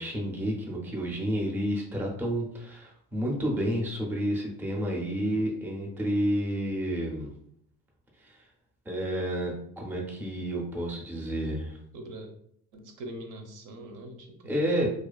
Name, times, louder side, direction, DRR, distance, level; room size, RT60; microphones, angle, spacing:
voice 1, 0.0-7.3 8.2-8.4 8.9-11.8 14.5-14.9, equal, 5° right, -1 dB, 0.4 m, -30 dB
voice 2, 11.9-12.3 12.7-14.7, right 1 dB, 70° right, 4 dB, 0.6 m, -42 dB
2.4 x 2.3 x 2.2 m, 0.68 s
cardioid pair, 125°, 33 cm